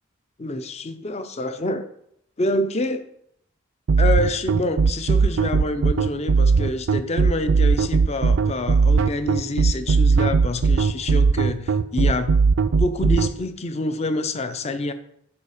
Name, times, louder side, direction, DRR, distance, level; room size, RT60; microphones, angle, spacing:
voice 1, 0.4-1.9 2.4-3.0 4.0-12.3 12.8-14.9, left 2 dB, 30° left, 0.6 m, -27 dB
sound 1, 3.9-13.3, right 5 dB, 75° right, 0.4 m, -18 dB
7.0 x 4.9 x 4.9 m
head